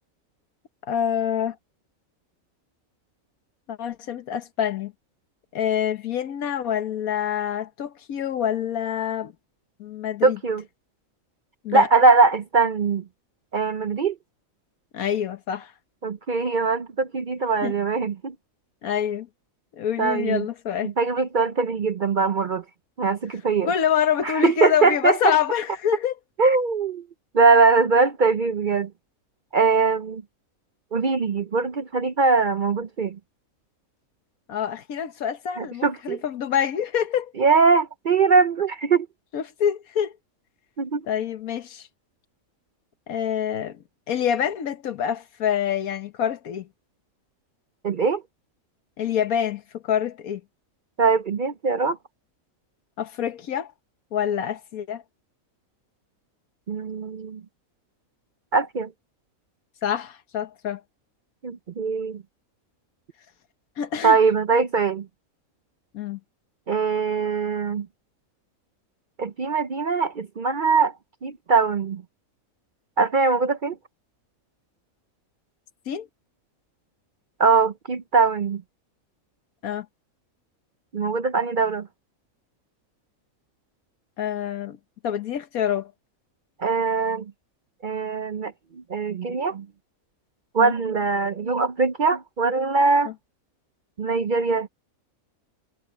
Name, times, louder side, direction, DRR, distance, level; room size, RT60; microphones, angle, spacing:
voice 1, 0.9-1.6 3.7-4.9 5.5-9.3 9.8-10.4 11.6-11.9 14.9-15.7 17.6-17.7 18.8-19.3 19.7-20.9 23.7-26.2 34.5-37.3 39.3-40.1 41.1-41.9 43.1-46.7 49.0-50.4 53.0-53.7 54.1-55.0 59.8-60.8 63.8-64.2 65.9-66.2 75.9-76.1 79.6-79.9 84.2-84.8 85.0-85.9 90.6-90.7, left 9 dB, 85° left, 1.5 m, -26 dB
voice 2, 10.2-10.6 11.7-13.0 13.5-14.2 16.0-18.3 20.0-20.5 20.8-22.6 23.0-23.7 24.2-25.4 26.4-27.0 27.3-28.9 29.5-30.2 30.9-33.2 35.6-36.2 37.4-39.1 40.8-41.1 47.8-48.2 51.0-52.0 56.7-57.4 58.5-58.9 61.4-62.2 64.0-65.1 66.7-67.9 69.2-70.9 71.2-72.0 73.0-73.8 77.4-78.6 80.9-81.9 86.6-87.3 87.8-89.7 90.5-93.1 94.0-94.7, right 4 dB, 50° right, 0.6 m, -21 dB
omnidirectional pair, 1.5 m